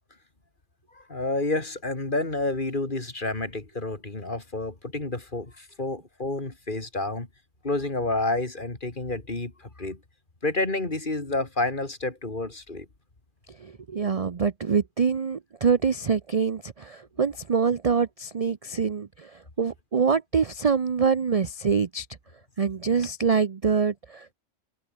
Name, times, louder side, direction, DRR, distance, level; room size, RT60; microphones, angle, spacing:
voice 1, 0.9-7.3 7.6-10.0 10.4-12.9, left 2 dB, 40° left, 3.1 m, -29 dB
voice 2, 13.6-19.3 19.6-22.1 22.6-24.3, right 6 dB, 35° right, 0.6 m, -25 dB
omnidirectional pair, 1.4 m